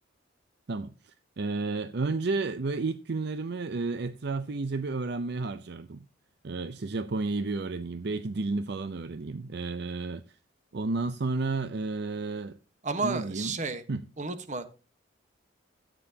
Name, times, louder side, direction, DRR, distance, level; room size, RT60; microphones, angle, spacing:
voice 1, 0.7-6.0 6.4-10.2 10.7-12.6 13.0-13.5 13.9-14.1, right 3 dB, 55° right, 0.6 m, -32 dB
voice 2, 12.8-13.8 14.2-14.7, right 3 dB, 40° right, 1.2 m, -32 dB
13.5 x 9.1 x 2.8 m
head